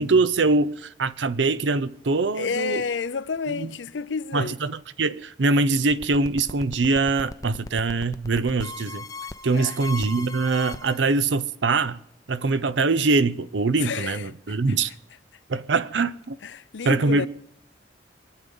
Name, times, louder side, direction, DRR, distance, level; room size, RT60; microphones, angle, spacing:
voice 1, 0.0-2.8 3.5-3.7 4.3-9.0 9.4-12.0 12.3-14.9 15.5-16.4 16.8-17.3, right 3 dB, 80° right, 0.6 m, -23 dB
voice 2, 2.4-4.6 9.5-9.8 13.8-14.8 16.4-17.3, left 5 dB, 85° left, 0.6 m, -30 dB
sound 1, 5.9-11.0, left 3 dB, 20° left, 0.5 m, -37 dB
25.0 x 8.6 x 5.4 m
head